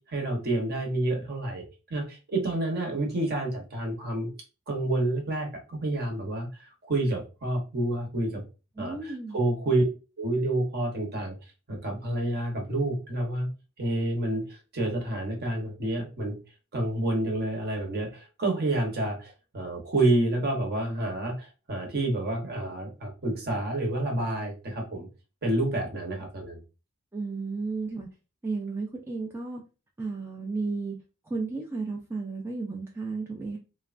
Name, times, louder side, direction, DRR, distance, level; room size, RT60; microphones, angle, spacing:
voice 1, 0.1-1.6 1.9-4.3 4.7-6.5 6.9-8.4 8.8-9.8 10.2-11.4 11.7-13.5 13.8-16.4 16.7-25.1 25.4-26.6, right 1 dB, 50° right, 0.9 m, -29 dB
voice 2, 8.8-9.4 27.1-28.1 28.4-29.6 30.0-31.0 31.3-33.6, right 3 dB, 10° right, 0.3 m, -33 dB
3.1 x 2.1 x 2.4 m
head